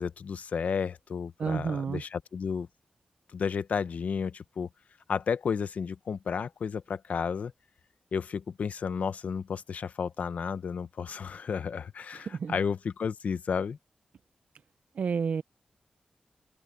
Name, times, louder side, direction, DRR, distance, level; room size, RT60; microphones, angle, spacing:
voice 1, 0.0-2.7 3.3-4.7 5.1-7.5 8.1-13.8, left 6 dB, 80° left, 0.8 m, -32 dB
voice 2, 1.4-2.0 12.1-12.6 15.0-15.4, right 6 dB, 80° right, 0.5 m, -30 dB
open air
wide cardioid pair, 135°, 2 cm